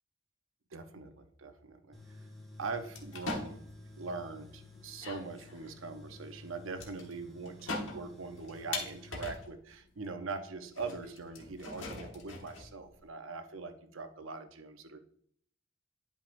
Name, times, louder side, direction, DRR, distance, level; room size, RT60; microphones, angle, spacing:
voice 1, 0.7-2.0 2.6-3.6 4.0-15.0, right 4 dB, 80° right, 8 dB, 0.7 m, -42 dB
Tools, 1.9-9.3, left 2 dB, ahead, 1.5 m, -53 dB
sound 1, 2.9-3.8 4.6-4.7 4.9-5.7 6.8-7.1 7.4-9.6 10.0-10.1 10.7-13.0, left 3 dB, 75° left, 1.2 m, -41 dB
10.5 x 5.5 x 2.6 m, 0.65 s
head